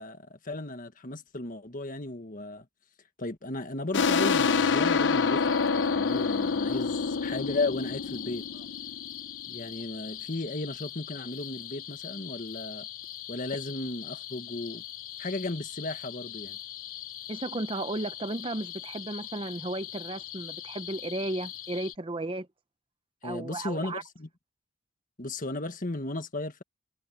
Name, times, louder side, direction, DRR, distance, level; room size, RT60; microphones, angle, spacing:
voice 1, 0.0-2.7 3.2-8.5 9.5-12.9 13.3-14.8 15.2-16.6 23.2-24.3 25.2-26.6, left 2 dB, 40° left, 1.6 m, -35 dB
sound 1, 3.9-9.3, left 5 dB, 60° left, 0.7 m, -27 dB
sound 2, 4.3-21.9, left 12 dB, 90° left, 2.9 m, -42 dB
voice 2, 17.3-22.5 23.2-24.0, right 2 dB, 25° right, 0.7 m, -34 dB
head